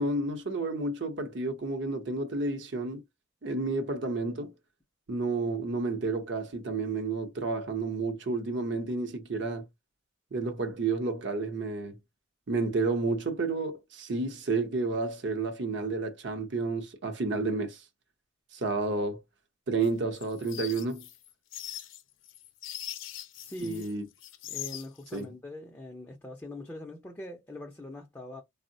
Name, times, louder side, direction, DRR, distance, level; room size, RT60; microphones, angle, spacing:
voice 1, 0.0-3.0 3.4-4.5 5.1-9.6 10.3-12.0 12.5-17.8 18.5-19.2 19.7-21.0 23.6-24.1 25.1-25.2, right 3 dB, 65° right, 0.7 m, -31 dB
sound 1, 19.8-23.9 24.2-25.2, left 12 dB, 80° left, 0.5 m, -41 dB
voice 2, 23.4-23.9 24.5-28.4, left 1 dB, 10° left, 0.4 m, -42 dB
3.5 x 2.0 x 2.6 m
head